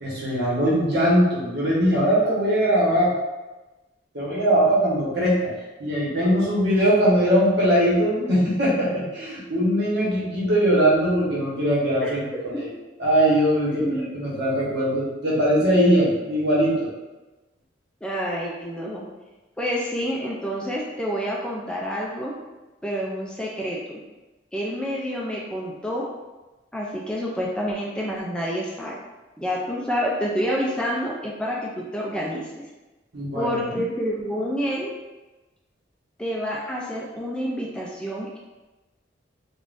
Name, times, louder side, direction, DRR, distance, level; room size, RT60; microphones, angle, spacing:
voice 1, 0.0-3.1 4.1-5.5 5.8-12.2 12.5-12.7 13.0-13.8 14.1-16.9 33.1-33.8, equal, 60° right, -6 dB, 1.1 m, -21 dB
voice 2, 13.7-14.2 15.6-15.7 18.0-19.0 19.6-22.4 22.8-24.0 24.5-26.1 26.7-29.0 29.4-32.6 33.3-34.9 36.2-38.4, equal, 5° left, -4 dB, 0.3 m, -28 dB
3.5 x 2.4 x 2.5 m, 1.1 s
head